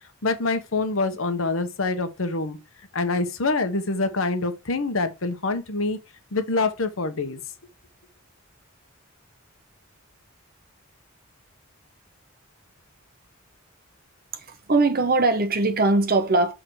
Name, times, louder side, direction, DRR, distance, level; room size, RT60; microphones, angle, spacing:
voice 1, 0.2-2.6 2.9-6.0 6.3-7.4, left 3 dB, 75° left, 1.1 m, -25 dB
voice 2, 14.3-16.5, right 3 dB, 45° right, 1.1 m, -21 dB
6.3 x 3.8 x 4.7 m
head